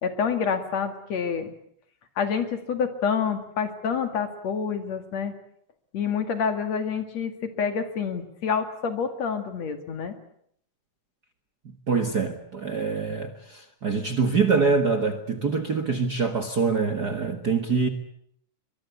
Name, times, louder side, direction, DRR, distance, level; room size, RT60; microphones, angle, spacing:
voice 1, 0.0-1.6 2.2-5.3 5.9-10.1, left 6 dB, 60° left, 3.1 m, -27 dB
voice 2, 11.9-17.9, right 4 dB, 40° right, 1.6 m, -25 dB
24.0 x 21.5 x 8.4 m
omnidirectional pair, 3.6 m